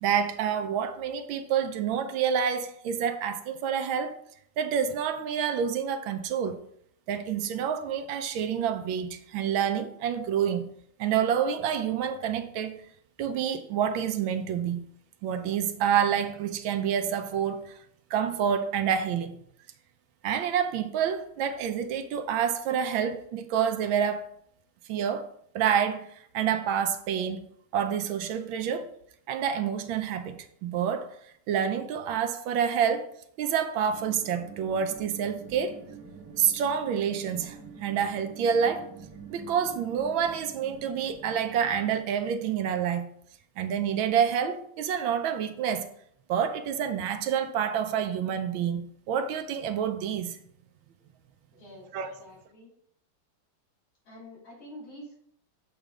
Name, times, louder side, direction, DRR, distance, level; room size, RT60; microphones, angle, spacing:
voice 1, 0.0-4.2 4.6-6.6 7.1-10.7 11.0-12.8 13.2-14.8 15.2-17.8 18.1-19.3 20.2-24.3 24.9-27.5 27.7-28.9 29.3-31.1 31.5-33.1 33.4-35.8 36.4-38.9 39.3-43.1 43.6-45.9 46.3-48.8 49.1-50.4 51.9-52.1, right 8 dB, 80° right, 1.4 m, -28 dB
sound 1, 33.9-42.0, right 6 dB, 60° right, 1.7 m, -46 dB
voice 2, 51.5-51.9 52.2-52.7 54.0-55.2, equal, 85° left, 4.1 m, -47 dB
7.3 x 3.4 x 4.9 m
omnidirectional pair, 2.2 m